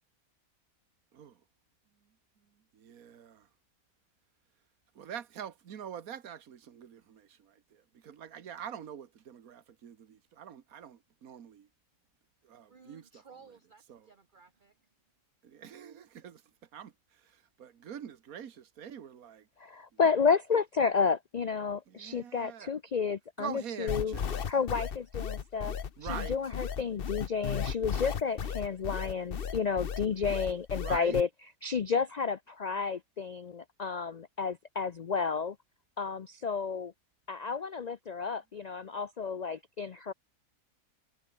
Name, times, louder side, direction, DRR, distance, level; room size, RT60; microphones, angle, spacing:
voice 1, 2.7-3.5 4.9-11.7 12.5-13.2 13.9-14.1 15.4-16.4 16.7-16.9 17.6-19.4 21.9-22.7 23.4-24.3 26.0-26.4 30.8-31.2, right 9 dB, 75° right, 1.7 m, -44 dB
voice 2, 12.7-14.7, right 5 dB, 35° right, 1.3 m, -56 dB
voice 3, 19.6-24.1 24.5-25.7 26.0-31.3 31.6-35.6 36.0-36.9 37.3-40.1, left 5 dB, 85° left, 0.3 m, -31 dB
sound 1, 23.9-31.2, left 7 dB, 45° left, 1.0 m, -34 dB
omnidirectional pair, 1.5 m